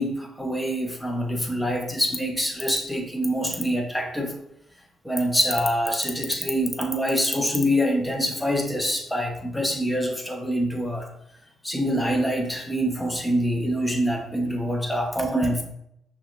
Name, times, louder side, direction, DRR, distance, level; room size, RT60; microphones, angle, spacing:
voice 1, 0.0-4.3 5.0-11.1 11.6-15.6, equal, 10° left, 2 dB, 0.9 m, -25 dB
6.0 x 2.5 x 2.2 m, 0.77 s
supercardioid pair, 55°, 0 cm